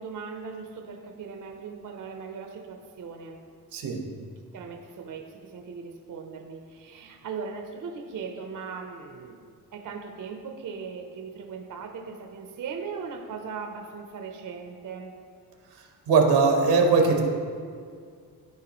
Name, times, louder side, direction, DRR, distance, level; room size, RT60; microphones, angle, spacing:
voice 1, 0.0-3.4 4.5-9.4 9.7-15.1, right 5 dB, 50° right, 3 dB, 0.7 m, -38 dB
voice 2, 16.1-17.2, right 4 dB, 90° right, 3 dB, 1.1 m, -20 dB
13.5 x 4.6 x 3.0 m, 2.2 s
cardioid pair, 115°, 39 cm